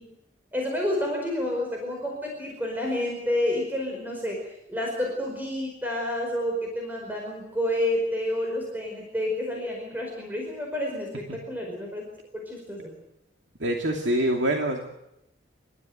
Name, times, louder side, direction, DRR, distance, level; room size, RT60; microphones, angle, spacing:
voice 1, 0.5-4.4 4.7-12.0 12.3-12.9, left 1 dB, 10° right, 0 dB, 5.0 m, -29 dB
voice 2, 13.6-14.8, right 1 dB, 70° right, 1 dB, 2.6 m, -25 dB
27.5 x 14.0 x 9.1 m, 0.84 s
head